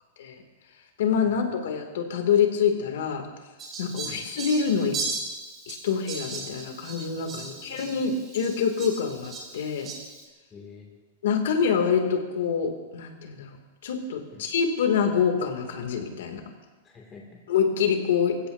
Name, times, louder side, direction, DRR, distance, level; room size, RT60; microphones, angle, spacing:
voice 1, 1.0-3.3 3.8-5.0 5.7-9.9 11.2-13.6 13.8-16.4 17.5-18.4, left 6 dB, 70° left, 4 dB, 2.7 m, -26 dB
Fowl, 3.6-10.2, right 3 dB, 20° right, 3.1 m, -37 dB
voice 2, 7.3-8.1 10.5-10.9 14.3-14.4 16.8-17.5, left 4 dB, 15° left, -2 dB, 2.6 m, -47 dB
25.5 x 16.0 x 2.8 m, 1.2 s
supercardioid pair, 175°, 0 cm